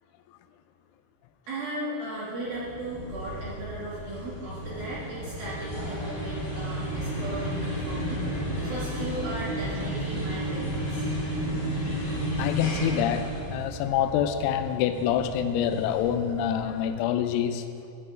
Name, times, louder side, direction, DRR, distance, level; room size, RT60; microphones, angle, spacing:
voice 1, 1.5-7.5 7.8-11.1, right 1 dB, 65° right, -8 dB, 2.6 m, -36 dB
sound 1, 2.5-17.0, equal, 65° left, 1.2 m, -33 dB
voice 2, 12.4-17.6, left 9 dB, 90° left, 9 dB, 3.3 m, -26 dB
9.4 x 8.4 x 5.0 m, 2.5 s
omnidirectional pair, 5.9 m